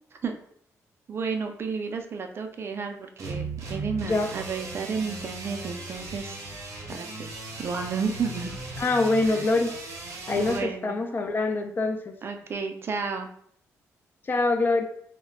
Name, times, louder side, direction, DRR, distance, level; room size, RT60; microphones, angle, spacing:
voice 1, 1.1-6.4 6.9-8.5 9.2-9.4 10.4-11.0 12.2-13.3, right 5 dB, 45° right, 5 dB, 0.3 m, -32 dB
sound 1, 3.2-10.6, right 3 dB, 65° right, 0.7 m, -37 dB
voice 2, 8.8-9.7 10.3-12.2 14.3-14.8, left 3 dB, 35° left, 6 dB, 0.3 m, -24 dB
2.1 x 2.1 x 3.6 m, 0.65 s
cardioid pair, 100°, 6 cm